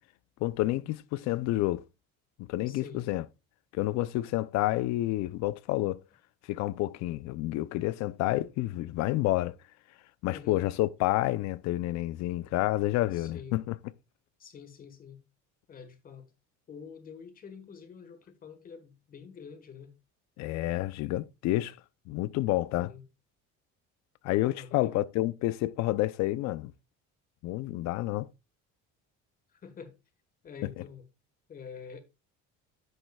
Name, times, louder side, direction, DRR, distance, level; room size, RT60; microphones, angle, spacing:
voice 1, 0.4-1.8 2.4-3.2 3.7-6.0 6.5-9.5 10.2-13.7 20.4-21.8 22.1-22.9 24.2-26.7 27.4-28.3, left 17 dB, 65° left, 0.6 m, -29 dB
voice 2, 2.7-3.0 10.3-10.6 13.1-13.6 14.4-15.2 15.7-16.3 16.7-19.9 22.7-23.1 24.5-25.0 29.5-29.9 30.4-31.0 31.5-32.0, left 6 dB, 30° left, 1.4 m, -47 dB
11.0 x 7.8 x 2.3 m
cardioid pair, 160°, 30 cm